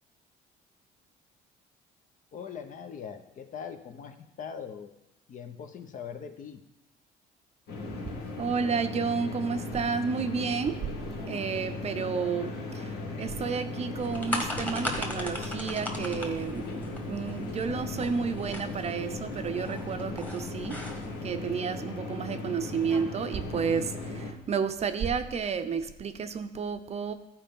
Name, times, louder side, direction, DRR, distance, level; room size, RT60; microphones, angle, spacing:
voice 1, 2.3-4.9 5.3-6.6, left 7 dB, 50° left, 7 dB, 1.0 m, -41 dB
sound 1, 7.7-24.3, left 2 dB, 80° left, 1.8 m, -37 dB
voice 2, 8.4-10.8 11.3-16.7 17.1-20.8 21.2-27.1, right 6 dB, 40° right, 9 dB, 0.7 m, -31 dB
sound 2, 13.9-21.2, left 1 dB, 10° left, 1.5 m, -38 dB
13.5 x 4.5 x 5.4 m, 0.88 s
cardioid pair, 110°, 17 cm